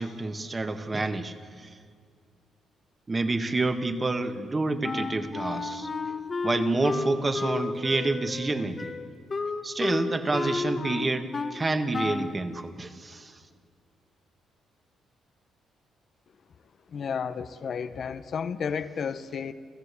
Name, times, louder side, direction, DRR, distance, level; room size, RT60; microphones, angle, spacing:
voice 1, 0.0-1.8 3.1-6.1 6.4-8.9 9.6-13.4, right 2 dB, 25° right, 7 dB, 1.6 m, -28 dB
Wind instrument woodwind instrument, 4.8-11.6 11.9-12.4, left 4 dB, 35° left, 1.3 m, -32 dB
voice 2, 16.9-19.5, left 6 dB, 55° left, 11 dB, 0.9 m, -32 dB
28.5 x 15.0 x 8.4 m, 2.1 s
cardioid pair, 90°, 0 cm